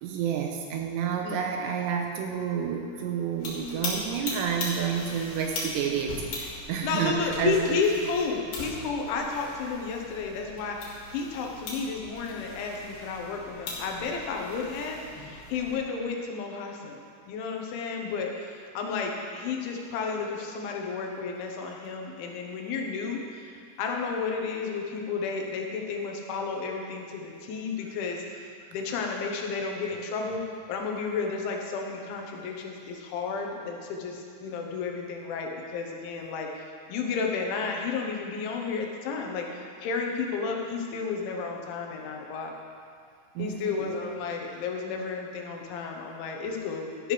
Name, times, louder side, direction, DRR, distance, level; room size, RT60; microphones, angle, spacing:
voice 1, 0.0-7.8 43.4-43.9, right 7 dB, 80° right, 2 dB, 2.6 m, -30 dB
sound 1, 3.4-15.8, left 2 dB, 65° left, 3.7 m, -39 dB
voice 2, 6.8-17.0 17.3-30.4 30.7-36.6 36.9-42.5 43.4-47.1, left 5 dB, 85° left, 1 dB, 3.5 m, -32 dB
13.0 x 11.5 x 3.3 m, 2.3 s
omnidirectional pair, 5.3 m